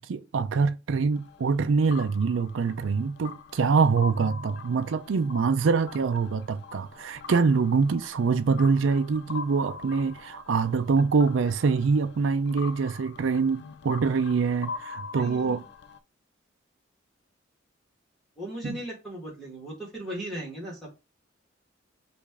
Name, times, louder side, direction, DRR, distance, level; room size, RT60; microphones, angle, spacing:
voice 1, 0.0-15.6 18.6-18.8, right 5 dB, 80° right, 0.4 m, -25 dB
sound 1, 1.1-16.0, left 5 dB, 60° left, 0.4 m, -43 dB
voice 2, 15.1-15.6 18.4-20.9, right 1 dB, ahead, 1.4 m, -37 dB
5.1 x 2.5 x 3.5 m
head